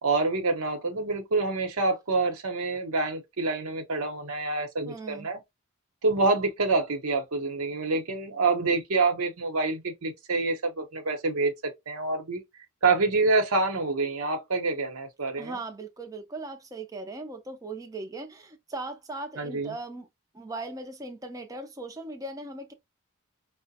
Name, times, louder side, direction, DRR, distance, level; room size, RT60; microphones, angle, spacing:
voice 1, 0.0-5.4 6.0-11.5 11.9-12.4 12.8-15.6 19.4-19.7, right 3 dB, 80° right, 0.9 m, -27 dB
voice 2, 4.9-5.3 15.4-20.1 20.3-22.7, right 2 dB, 15° right, 0.5 m, -38 dB
4.8 x 2.1 x 2.7 m
head